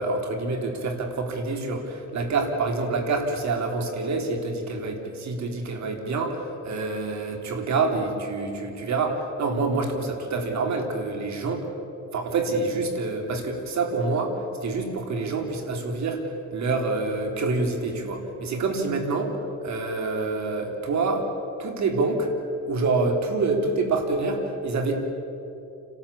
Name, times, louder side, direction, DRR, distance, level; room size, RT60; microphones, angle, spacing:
voice 1, 0.0-11.6 12.1-21.3 21.6-22.3 22.7-24.9, right 3 dB, 65° right, 3 dB, 3.6 m, -27 dB
30.0 x 13.0 x 8.6 m, 2.9 s
cardioid pair, 90°, 30 cm